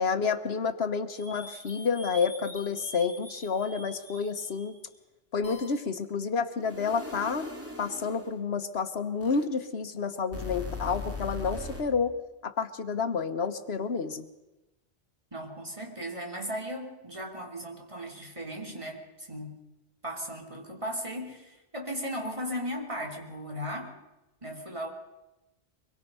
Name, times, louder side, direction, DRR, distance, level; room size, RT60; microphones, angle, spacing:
voice 1, 0.0-4.8 5.3-7.5 7.8-12.2 12.4-14.3, left 5 dB, 75° left, 9 dB, 1.3 m, -29 dB
sound 1, 1.1-4.8 5.4-5.8 6.6-8.3 9.2-9.4 10.3-11.8, left 2 dB, 15° right, 3.2 m, -41 dB
voice 2, 15.3-19.5 20.0-24.0 24.4-24.9, equal, 30° right, 0 dB, 3.3 m, -37 dB
24.5 x 22.0 x 5.5 m, 1.0 s
omnidirectional pair, 1.1 m